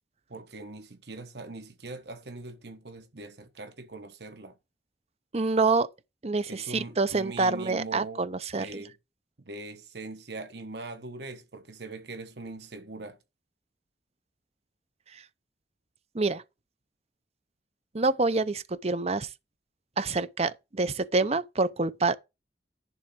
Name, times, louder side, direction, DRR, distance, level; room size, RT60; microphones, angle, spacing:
voice 1, 0.3-4.6 6.5-8.2 8.6-9.0 9.4-13.2, right 3 dB, 70° right, 1.3 m, -41 dB
voice 2, 5.3-5.9 6.2-8.7 16.1-16.4 17.9-19.3 20.0-22.2, right 3 dB, 35° right, 0.7 m, -26 dB
11.0 x 4.0 x 7.7 m
head